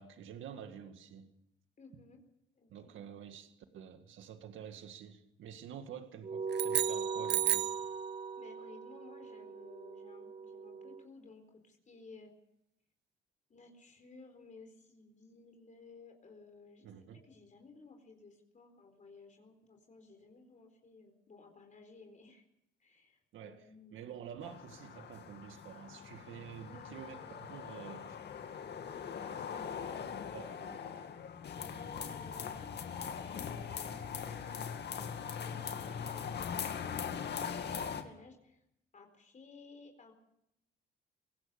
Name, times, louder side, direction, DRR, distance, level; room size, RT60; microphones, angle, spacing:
voice 1, 0.0-1.3 2.7-7.7 16.8-17.2 23.3-23.6 23.9-28.2 30.0-31.1, right 8 dB, 80° right, 2.0 m, -49 dB
voice 2, 1.8-2.2 2.5-3.0 8.4-12.3 13.5-16.8 17.1-22.5 22.8-24.1 26.7-27.0 29.0-29.9 31.5-38.7 38.9-40.1, left 3 dB, 40° left, 4.1 m, -57 dB
sound 1, 6.2-11.0, right 5 dB, 30° right, 1.6 m, -40 dB
sound 2, 6.5-7.9, right 12 dB, 60° right, 0.9 m, -32 dB
sound 3, 24.4-38.0, left 7 dB, 60° left, 2.2 m, -41 dB
24.0 x 17.5 x 7.0 m
cardioid pair, 90°, 20 cm